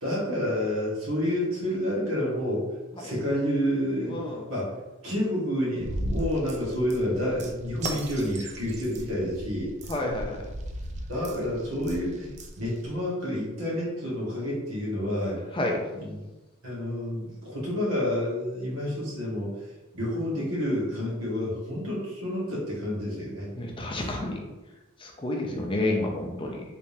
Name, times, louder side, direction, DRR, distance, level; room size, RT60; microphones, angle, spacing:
voice 1, 0.0-2.7 3.0-4.7 5.0-9.7 11.1-15.4 15.9-16.2 16.6-19.6 19.9-23.5 23.9-24.1, equal, 70° right, -6 dB, 1.4 m, -29 dB
voice 2, 4.1-4.4 9.9-10.4 15.5-15.8 23.6-24.4 25.0-26.6, left 2 dB, 25° left, 1 dB, 0.5 m, -29 dB
sound 1, 5.8-13.0, right 1 dB, 30° right, 0.3 m, -37 dB
3.4 x 3.3 x 2.7 m, 1.1 s
head